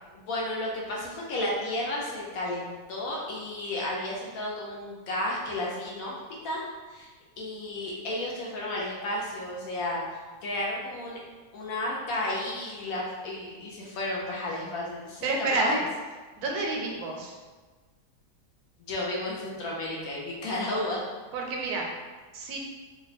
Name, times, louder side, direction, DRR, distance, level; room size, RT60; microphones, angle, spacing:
voice 1, 0.2-6.2 6.4-11.2 11.5-15.3 15.6-15.8 18.9-21.0, left 1 dB, 65° left, -4 dB, 1.1 m, -32 dB
voice 2, 15.2-15.8 16.4-17.3 21.3-21.9 22.3-22.6, right 3 dB, 75° right, 0 dB, 1.1 m, -29 dB
2.9 x 2.2 x 4.0 m, 1.3 s
omnidirectional pair, 1.7 m